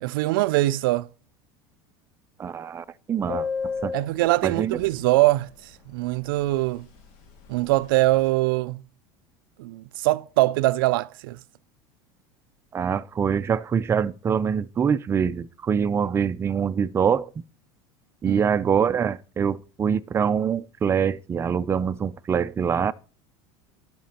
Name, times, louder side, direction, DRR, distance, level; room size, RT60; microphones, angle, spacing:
voice 1, 0.0-1.1 3.9-6.9 7.5-8.8 9.6-11.4 18.2-18.4, right 18 dB, 85° right, 0.4 m, -23 dB
voice 2, 2.4-3.5 3.8-3.9 4.4-4.8 12.7-17.3 18.2-22.9, right 7 dB, 20° right, 0.5 m, -24 dB
Subway metro underground, 3.3-5.4 5.7-5.8 6.1-6.3 6.6-7.0 7.3-8.3, left 5 dB, 65° left, 3.2 m, -33 dB
11.5 x 6.1 x 4.3 m
supercardioid pair, 120°, 11 cm